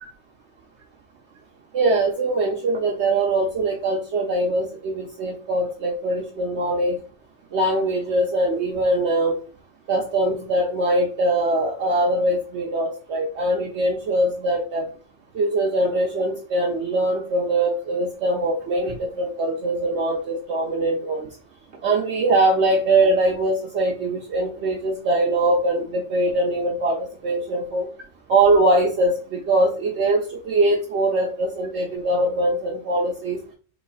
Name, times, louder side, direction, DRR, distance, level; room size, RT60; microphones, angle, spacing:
voice 1, 1.7-7.0 7.5-9.3 9.9-14.8 15.3-21.3 21.8-27.0 27.2-27.9 28.3-33.4, right 2 dB, 65° right, 0 dB, 0.9 m, -22 dB
4.0 x 3.1 x 2.3 m, 0.39 s
omnidirectional pair, 1.4 m